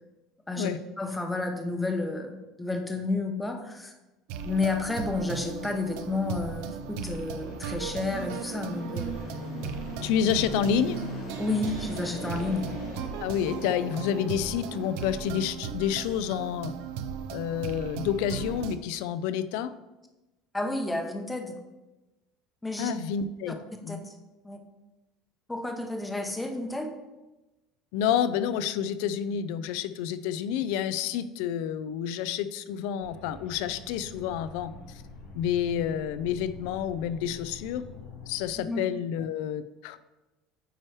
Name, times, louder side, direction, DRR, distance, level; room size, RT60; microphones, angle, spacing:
voice 1, 1.0-3.9 4.4-9.2 11.4-12.7 20.5-21.6 22.6-22.9 23.5-23.6 23.9-24.1 24.4-24.6 25.5-26.9 38.6-38.8, left 3 dB, 10° left, 4 dB, 0.7 m, -31 dB
sound 1, 4.3-18.8, right 7 dB, 75° right, 0.5 m, -37 dB
Fixed-wing aircraft airplane, 5.3-15.5, left 4 dB, 50° left, 0.7 m, -43 dB
voice 2, 10.0-11.0 13.2-16.7 17.3-19.7 22.8-23.6 23.8-24.1 27.9-34.7 35.3-37.8 38.3-40.0, left 9 dB, 75° left, 14 dB, 0.4 m, -29 dB
sound 2, 33.0-38.5, left 4 dB, 90° left, 1.8 m, -46 dB
9.0 x 3.1 x 4.6 m, 1.1 s
cardioid pair, 155°, 0 cm